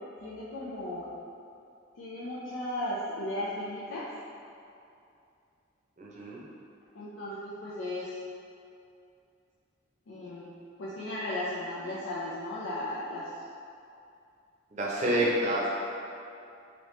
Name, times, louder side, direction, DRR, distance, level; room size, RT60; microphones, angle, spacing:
voice 1, 0.2-1.1 1.9-4.1 6.9-8.2 10.1-10.5 10.8-13.3 15.0-15.3, left 1 dB, 90° left, -8 dB, 0.5 m, -36 dB
voice 2, 6.0-6.4 14.7-15.6, right 1 dB, 40° right, -5 dB, 0.6 m, -28 dB
3.0 x 2.8 x 3.1 m, 2.5 s
head